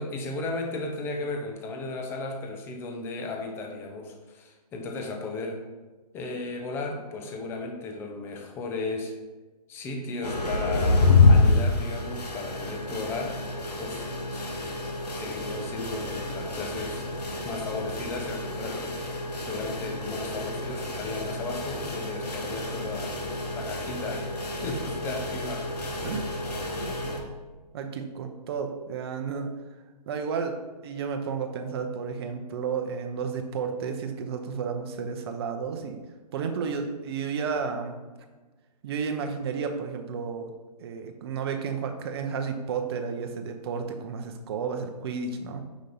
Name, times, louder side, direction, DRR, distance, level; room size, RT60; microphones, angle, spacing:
voice 1, 0.0-5.6 6.1-9.1 9.7-13.4 13.8-14.5 15.2-17.1 17.4-18.9 19.4-24.3 24.6-26.1, left 3 dB, 10° left, 2 dB, 0.5 m, -35 dB
sound 1, 10.2-27.2, left 3 dB, 70° left, 1.2 m, -27 dB
voice 2, 26.8-27.3 27.7-29.5 30.1-36.0 36.3-38.0 38.8-40.5 40.8-45.6, right 6 dB, 40° right, 6 dB, 0.7 m, -32 dB
5.2 x 5.1 x 4.0 m, 1.3 s
figure-of-eight pair, 135°, 21 cm